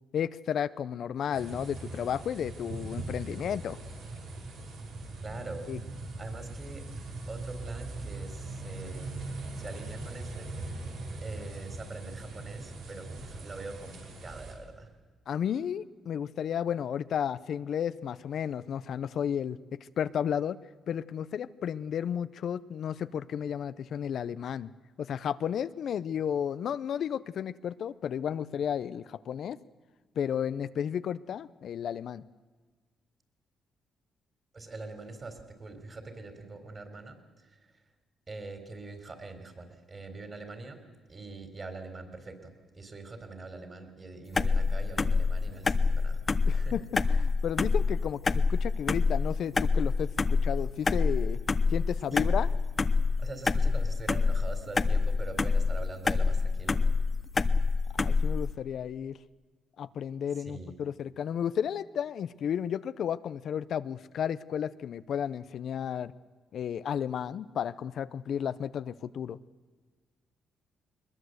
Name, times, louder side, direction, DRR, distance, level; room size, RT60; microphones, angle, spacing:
voice 1, 0.1-3.8 5.7-5.8 15.3-20.6 20.9-24.7 25.0-29.6 30.2-32.2 46.5-46.8 47.1-51.4 51.7-52.5 58.0-59.2 59.8-66.1 66.5-69.4, left 8 dB, 65° left, 15 dB, 0.6 m, -33 dB
sound 1, 1.3-14.5, right 2 dB, 85° right, 5.0 m, -40 dB
voice 2, 5.2-5.7 6.2-6.9 7.3-10.8 11.2-14.9 34.5-37.8 38.3-40.8 41.1-46.2 46.5-46.8 52.1-52.3 53.2-56.8 60.4-60.8, right 3 dB, 30° right, 7 dB, 3.9 m, -43 dB
sound 2, 44.3-58.5, left 4 dB, 30° left, 0.8 m, -26 dB
21.0 x 21.0 x 8.0 m, 1.4 s
cardioid pair, 90°, 0 cm